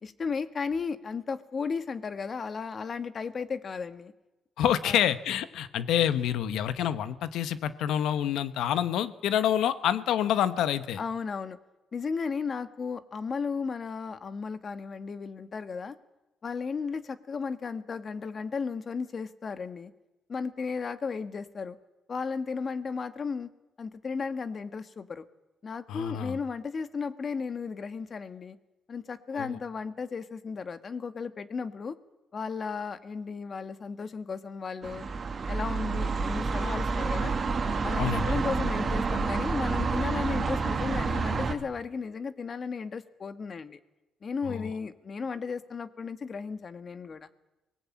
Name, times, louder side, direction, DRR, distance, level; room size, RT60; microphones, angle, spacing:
voice 1, 0.0-4.1 4.8-5.1 11.0-11.6 11.9-16.0 16.4-19.9 20.3-21.8 22.1-23.5 23.8-25.2 25.6-28.6 28.9-32.0 32.3-35.1 35.5-37.3 37.8-43.8 44.2-47.3, left 5 dB, 45° left, 11 dB, 1.5 m, -34 dB
voice 2, 4.6-11.0 25.9-26.4 29.3-29.6 38.0-38.3 44.5-44.7, left 10 dB, 85° left, 13 dB, 1.2 m, -27 dB
sound 1, 34.8-41.5, right 4 dB, 40° right, 2.5 m, -29 dB
24.5 x 19.0 x 8.7 m, 1.0 s
cardioid pair, 90°, 0 cm